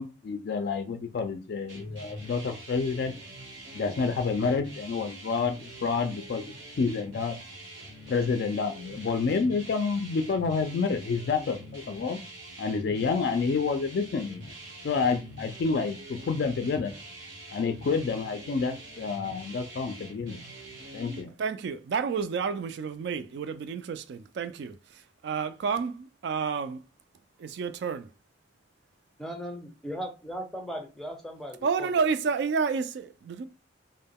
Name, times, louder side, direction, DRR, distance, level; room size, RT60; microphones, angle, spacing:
voice 1, 0.0-3.1 3.7-6.4 6.8-7.4 8.1-12.2 12.6-14.5 14.8-16.9 17.5-20.4 20.9-21.3, left 4 dB, 55° left, 0.3 m, -29 dB
sound 1, 1.7-21.2, right 1 dB, 80° right, 1.0 m, -45 dB
voice 2, 21.4-26.8 27.4-28.0 31.6-33.5, right 5 dB, 60° right, 0.3 m, -30 dB
voice 3, 29.2-32.1, equal, ahead, 0.5 m, -38 dB
2.2 x 2.1 x 3.5 m
head